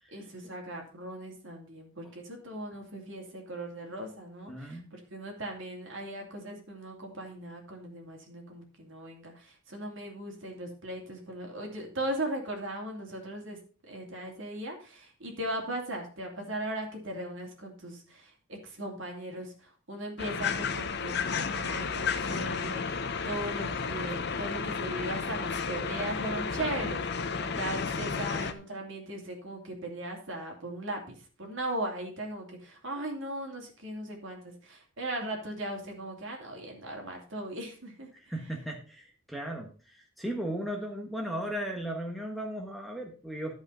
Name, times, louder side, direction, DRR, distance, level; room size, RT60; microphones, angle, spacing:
voice 1, 0.1-13.6 13.9-27.0 27.5-38.1, right 1 dB, 60° right, 1 dB, 2.8 m, -38 dB
voice 2, 4.5-4.8 26.6-26.9 27.4-27.6 38.1-43.5, right 1 dB, ahead, 1 dB, 1.2 m, -37 dB
sound 1, 20.2-28.5, left 5 dB, 50° left, 0.8 m, -32 dB
11.5 x 5.2 x 5.5 m, 0.39 s
head